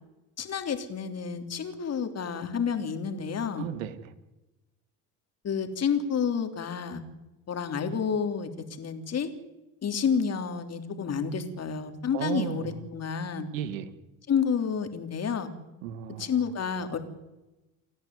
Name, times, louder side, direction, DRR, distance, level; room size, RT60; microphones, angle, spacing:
voice 1, 0.4-3.7 5.4-7.0 7.5-8.5 8.8-9.3 9.8-13.5 14.3-15.5 16.2-17.0, left 6 dB, 40° left, 7 dB, 3.4 m, -29 dB
voice 2, 3.5-4.1 12.1-12.8 13.5-13.9 15.8-16.4, right 10 dB, 85° right, 12 dB, 1.9 m, -34 dB
29.5 x 10.5 x 9.6 m, 1.0 s
supercardioid pair, 85°, 39 cm